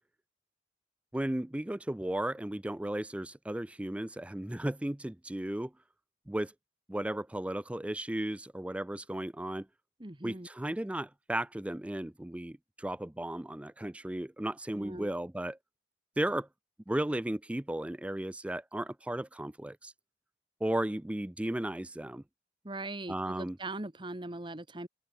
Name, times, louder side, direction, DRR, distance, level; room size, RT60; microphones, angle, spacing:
voice 1, 1.1-5.7 6.3-6.5 6.9-9.7 10.2-15.6 16.2-16.5 16.9-19.9 20.6-22.2 23.1-23.6, right 1 dB, 5° right, 0.3 m, -35 dB
voice 2, 10.0-10.5 14.7-15.1 22.6-24.9, right 2 dB, 25° right, 1.5 m, -40 dB
open air
head